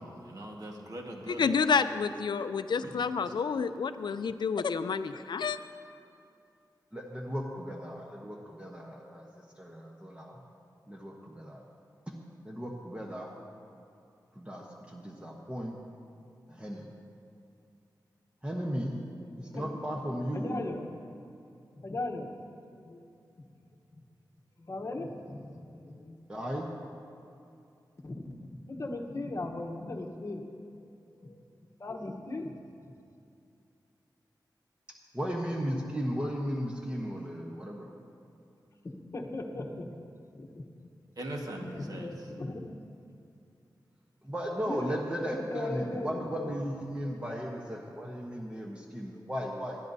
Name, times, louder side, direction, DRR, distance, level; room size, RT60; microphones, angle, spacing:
voice 1, 0.0-1.4 2.8-3.3 41.2-42.1, right 1 dB, 55° right, 0 dB, 1.6 m, -41 dB
voice 2, 1.3-5.6, left 5 dB, 75° left, 11 dB, 0.4 m, -29 dB
voice 3, 6.9-9.3 9.6-10.4 10.9-11.6 12.1-12.2 12.4-13.3 14.4-15.8 16.5-16.9 18.4-19.0 19.4-20.6 26.3-26.7 35.1-37.9 44.2-49.8, equal, 15° right, -1 dB, 1.0 m, -36 dB
voice 4, 19.5-19.9 20.1-21.0 21.8-22.3 22.7-23.1 24.6-26.2 28.0-31.4 31.8-32.5 38.8-39.9 40.3-40.6 41.6-42.8 44.5-45.0 45.2-46.6, left 2 dB, 40° left, 1 dB, 1.0 m, -38 dB
20.0 x 12.0 x 2.7 m, 2.6 s
wide cardioid pair, 130°, 8 cm